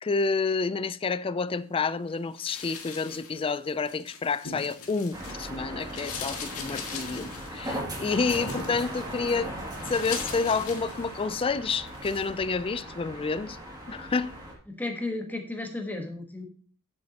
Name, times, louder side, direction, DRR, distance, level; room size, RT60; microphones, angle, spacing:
voice 1, 0.0-9.5 9.9-13.6 13.9-14.3, left 4 dB, 25° left, 0.4 m, -29 dB
sound 1, 2.3-5.5 5.8-11.5 11.9-12.3, left 5 dB, 75° left, 1.8 m, -41 dB
sound 2, 5.1-14.5, right 1 dB, 20° right, 2.3 m, -38 dB
voice 2, 14.7-16.4, left 2 dB, 10° left, 1.2 m, -33 dB
9.6 x 8.1 x 2.9 m
head